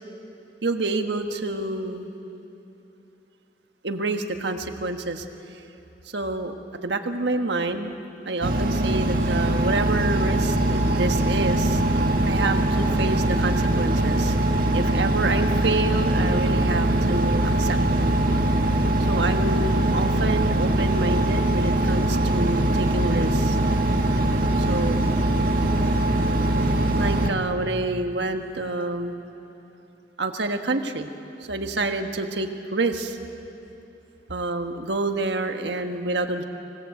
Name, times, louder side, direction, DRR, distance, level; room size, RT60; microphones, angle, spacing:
voice 1, 0.6-2.1 3.8-5.2 6.1-6.5 6.8-7.9 8.2-11.8 12.3-14.3 14.7-17.8 19.1-23.6 24.6-25.1 26.9-29.1 30.2-31.1 31.5-33.2 34.3-36.4, right 2 dB, 75° right, 5 dB, 1.5 m, -28 dB
Engine, 8.4-27.3, right 1 dB, 55° right, 1.7 m, -22 dB
26.5 x 18.0 x 8.3 m, 3.0 s
head